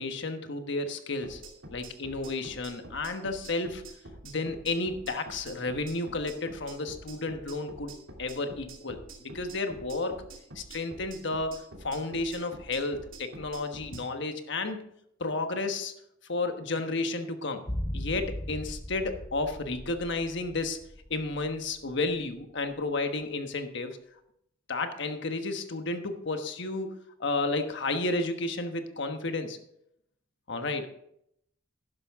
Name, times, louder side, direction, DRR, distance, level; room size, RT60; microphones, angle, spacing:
voice 1, 0.0-1.4 1.7-3.8 4.2-7.9 8.2-10.2 10.5-14.8 15.2-15.9 16.3-17.6 17.9-20.8 21.1-24.0 24.7-29.6 30.5-30.9, left 3 dB, 65° left, 7 dB, 1.3 m, -32 dB
sound 1, 1.2-14.0, right 2 dB, 80° right, 2.9 m, -46 dB
sound 2, 17.7-21.9 22.2-22.3, equal, 15° left, 0.9 m, -38 dB
12.0 x 11.0 x 3.6 m, 0.75 s
head